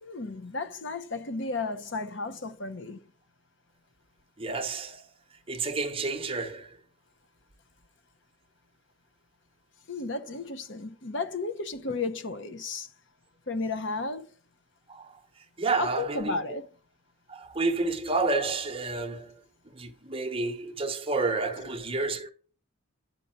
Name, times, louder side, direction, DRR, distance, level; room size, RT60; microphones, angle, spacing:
voice 1, 0.0-3.0 9.9-12.9 13.5-14.3 15.8-16.7, left 3 dB, 55° left, 0.8 m, -33 dB
voice 2, 4.4-5.0 5.5-6.8 14.9-15.2 15.6-16.6 17.3-19.3 19.7-22.3, right 3 dB, 25° right, 0.8 m, -30 dB
9.9 x 5.3 x 5.7 m
head